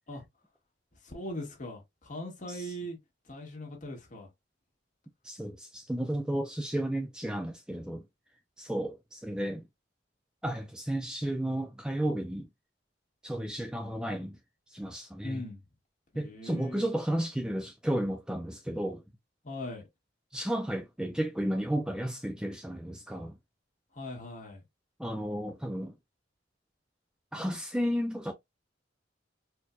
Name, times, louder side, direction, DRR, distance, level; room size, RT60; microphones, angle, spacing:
voice 1, 1.0-3.0 3.3-4.3 15.2-15.6 16.1-16.9 19.4-19.8 23.9-24.6, left 1 dB, 45° left, 1.6 m, -40 dB
voice 2, 5.2-8.0 8.6-9.6 10.4-12.5 13.2-14.4 14.7-15.4 16.2-19.0 20.3-23.3 25.0-25.9 27.3-28.3, right 1 dB, 5° right, 0.4 m, -33 dB
4.3 x 2.7 x 2.3 m
head